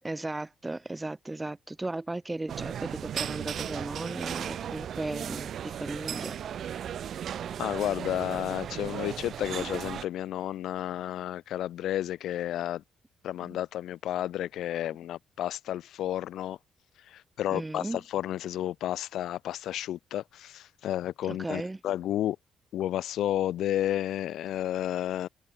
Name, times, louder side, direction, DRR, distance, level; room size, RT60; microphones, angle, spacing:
voice 1, 0.0-6.4 13.4-13.6 17.5-18.0 21.2-21.8, right 2 dB, 15° right, 5.2 m, -36 dB
sound 1, 2.5-10.1, right 9 dB, 65° right, 1.7 m, -36 dB
voice 2, 7.6-12.8 13.2-16.6 17.1-22.4 22.7-25.3, left 12 dB, 80° left, 2.4 m, -31 dB
cardioid pair, 85°, 0 cm